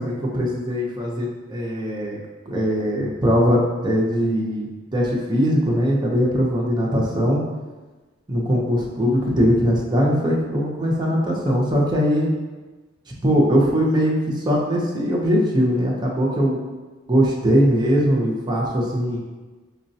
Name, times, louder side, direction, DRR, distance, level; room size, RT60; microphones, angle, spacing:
voice 1, 0.0-2.2 2.5-7.4 8.3-12.3 13.2-16.6 17.1-19.2, equal, 20° right, -3 dB, 0.5 m, -20 dB
4.6 x 2.1 x 2.7 m, 1.2 s
head